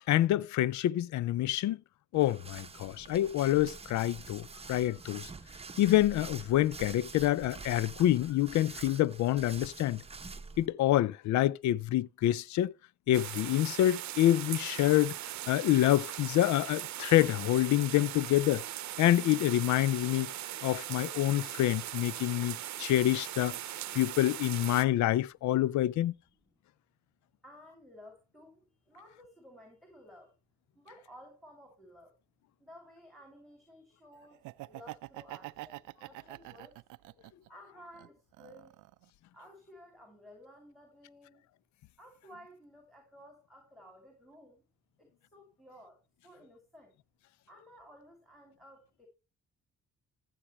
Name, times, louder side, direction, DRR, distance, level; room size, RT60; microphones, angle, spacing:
voice 1, 0.1-1.8 2.1-5.3 5.8-10.0 10.6-12.7 13.1-18.6 19.0-20.3 20.6-23.6 23.9-26.1, left 14 dB, 70° left, 0.5 m, -27 dB
sound 1, 2.1-10.7, right 4 dB, 20° right, 0.9 m, -47 dB
sound 2, 13.1-24.9, right 13 dB, 65° right, 0.8 m, -40 dB
voice 2, 27.4-30.4 30.7-32.2 32.6-36.8 37.5-38.8 39.3-41.4 42.0-44.6 45.0-46.9 47.5-49.1, equal, ahead, 2.8 m, -55 dB
Laughter, 34.3-37.5 37.9-39.0, right 18 dB, 90° right, 0.5 m, -45 dB
14.5 x 7.6 x 3.0 m
cardioid pair, 90°, 30 cm